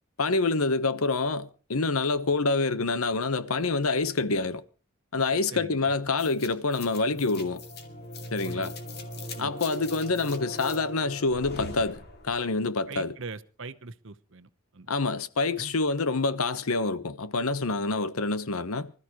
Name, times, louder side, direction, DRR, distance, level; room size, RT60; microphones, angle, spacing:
voice 1, 0.2-4.6 5.1-7.6 8.3-8.7 9.4-12.0 12.2-13.1 14.9-18.9, left 3 dB, 85° left, 1.1 m, -27 dB
voice 2, 5.5-5.9 8.4-8.7 9.4-9.5 12.9-14.9 15.6-15.7, right 3 dB, 60° right, 0.9 m, -42 dB
sound 1, 6.2-12.5, left 1 dB, 50° left, 2.5 m, -40 dB
25.0 x 13.5 x 3.1 m
head